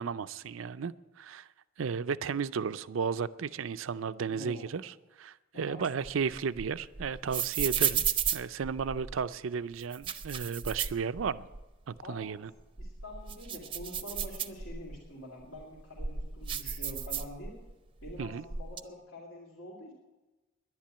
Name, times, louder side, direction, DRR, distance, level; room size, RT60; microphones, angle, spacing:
voice 1, 0.0-1.5 1.8-8.0 8.3-11.5 11.9-12.5 18.2-18.4, right 6 dB, 85° right, 14 dB, 0.5 m, -34 dB
voice 2, 4.3-4.7 5.5-5.8 12.0-12.3 12.8-17.6 18.0-19.9, equal, 80° left, -4 dB, 2.8 m, -46 dB
sound 1, 5.8-9.2 9.8-11.6 12.0-12.1 12.6-15.0 15.6-17.7 18.0-18.8, right 7 dB, 25° right, 0.6 m, -34 dB
11.0 x 10.5 x 8.5 m, 1.1 s
head